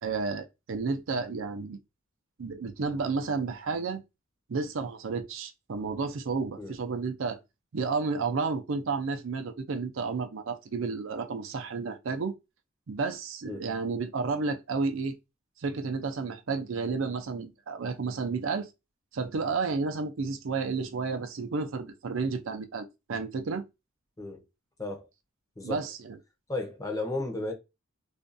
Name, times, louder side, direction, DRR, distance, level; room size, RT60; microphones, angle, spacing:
voice 1, 0.0-1.8 2.4-4.0 4.5-7.4 7.7-12.3 12.9-15.1 15.6-18.7 19.1-23.6 25.6-26.2, right 4 dB, 65° right, 0.5 m, -31 dB
voice 2, 26.5-27.5, left 2 dB, 15° left, 0.6 m, -34 dB
2.5 x 2.2 x 2.5 m
head